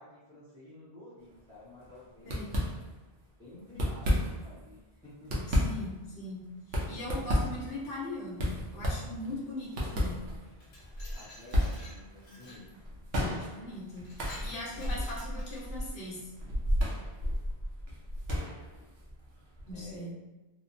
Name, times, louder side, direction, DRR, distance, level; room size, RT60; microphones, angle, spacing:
voice 1, 0.0-2.6 3.4-5.5 11.1-12.8 14.7-15.1 19.7-20.2, left 1 dB, 5° left, -14 dB, 0.7 m, -51 dB
sound 1, 1.3-1.6 1.8-2.0 2.3-3.2 3.6-4.6 5.0-19.9, equal, 85° right, 0.9 m, -33 dB
voice 2, 5.5-6.5 6.9-10.2 13.3-14.1 14.4-16.2 19.7-20.1, left 1 dB, 60° left, -5 dB, 1.0 m, -40 dB
Glass, 10.4-12.7 13.3-13.5 13.9-15.9, left 1 dB, 85° left, 1.0 m, -52 dB
2.9 x 2.1 x 2.6 m, 1.1 s
omnidirectional pair, 1.0 m